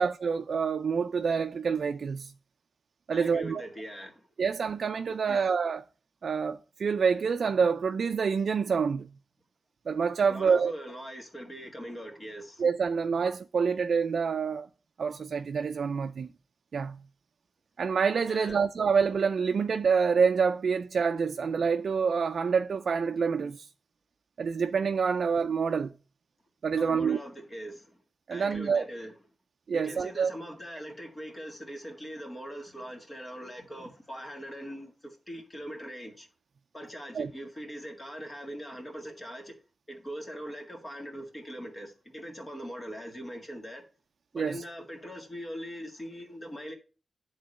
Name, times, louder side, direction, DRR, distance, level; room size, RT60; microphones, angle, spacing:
voice 1, 0.0-2.3 3.1-3.7 4.4-5.8 6.2-9.1 9.9-10.7 12.6-14.7 15.0-16.3 16.7-17.0 17.8-23.7 24.4-25.9 26.6-27.2 28.3-28.9 29.7-30.3 37.1-37.3 44.3-44.6, right 6 dB, 65° right, 0.4 m, -27 dB
voice 2, 3.1-4.3 5.3-5.4 10.3-12.6 18.2-18.6 26.8-28.0 28.3-29.1 29.7-36.3 36.7-39.5 39.9-43.9 44.3-46.7, equal, 25° left, 1.9 m, -41 dB
10.0 x 3.8 x 6.5 m
wide cardioid pair, 135°, 0 cm